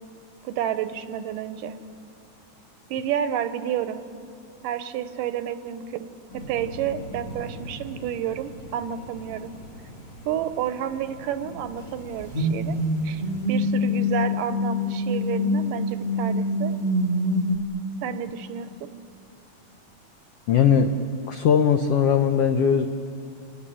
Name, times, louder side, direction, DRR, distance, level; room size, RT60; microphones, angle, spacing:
voice 1, 0.4-1.8 2.9-4.0 4.6-6.1 6.3-9.5 10.3-12.8 13.0-13.2 13.5-16.7 18.0-18.9, right 9 dB, 85° right, 11 dB, 2.5 m, -30 dB
sound 1, 6.3-13.4, equal, 60° left, 7.7 m, -42 dB
sound 2, 12.2-17.6, left 1 dB, 30° right, 0.8 m, -25 dB
voice 2, 20.5-20.9 21.3-22.9, left 7 dB, 85° left, 6 dB, 1.3 m, -19 dB
28.0 x 16.5 x 9.9 m, 2.6 s
omnidirectional pair, 3.8 m